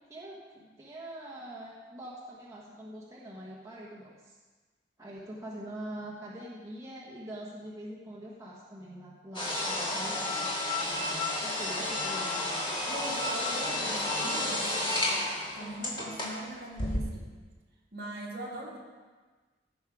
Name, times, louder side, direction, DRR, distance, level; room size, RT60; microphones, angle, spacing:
voice 1, 0.0-4.4 5.0-10.5 10.8-12.8, right 1 dB, 15° right, -6 dB, 1.3 m, -44 dB
sound 1, 9.3-16.4 16.8-17.0, left 1 dB, 25° left, 2.0 m, -31 dB
voice 2, 12.9-17.3 17.9-18.8, right 1 dB, 55° right, -3 dB, 2.3 m, -41 dB
15.5 x 6.4 x 4.9 m, 1.4 s
head